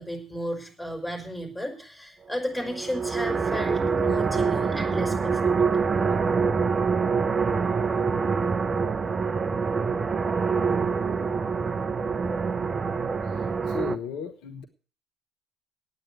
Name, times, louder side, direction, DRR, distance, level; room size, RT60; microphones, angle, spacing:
voice 1, 0.0-5.8, equal, 5° left, 3 dB, 5.4 m, -34 dB
sound 1, 2.6-14.0, right 5 dB, 30° right, 0.8 m, -25 dB
voice 2, 13.7-14.7, left 6 dB, 65° left, 7 dB, 1.0 m, -35 dB
9.6 x 9.0 x 9.4 m, 0.39 s
figure-of-eight pair, 55°, 0 cm